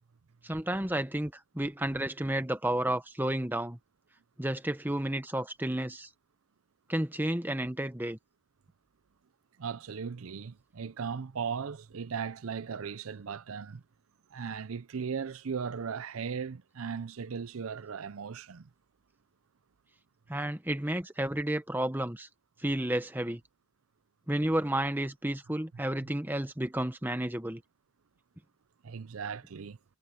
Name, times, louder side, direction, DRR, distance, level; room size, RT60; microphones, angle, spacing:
voice 1, 0.4-3.8 4.4-6.1 6.9-8.2 20.3-22.3 22.6-23.4 24.3-27.6, right 1 dB, 10° right, 1.0 m, -31 dB
voice 2, 9.6-13.8 14.3-18.7 28.8-29.8, right 6 dB, 70° right, 0.6 m, -37 dB
head